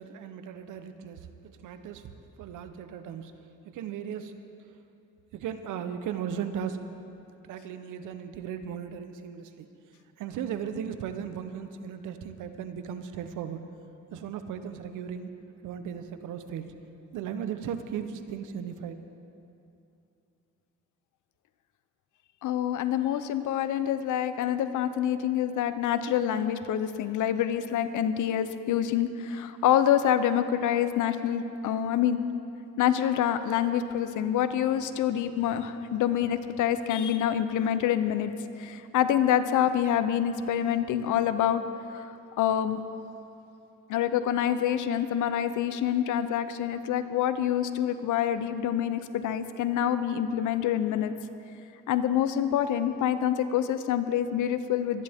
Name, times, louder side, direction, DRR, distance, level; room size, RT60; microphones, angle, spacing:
voice 1, 0.0-2.1 2.4-3.3 3.6-4.3 5.3-6.8 7.4-9.7 10.2-13.6 14.1-15.3 15.6-16.7 17.1-19.0, right 8 dB, 85° right, 9 dB, 0.9 m, -36 dB
voice 2, 22.4-32.2 32.8-41.6 41.9-42.0 42.4-42.8 43.9-51.1 51.9-55.0, left 10 dB, 80° left, 11 dB, 0.8 m, -26 dB
24.0 x 10.5 x 3.6 m, 2.7 s
cardioid pair, 90°, 30 cm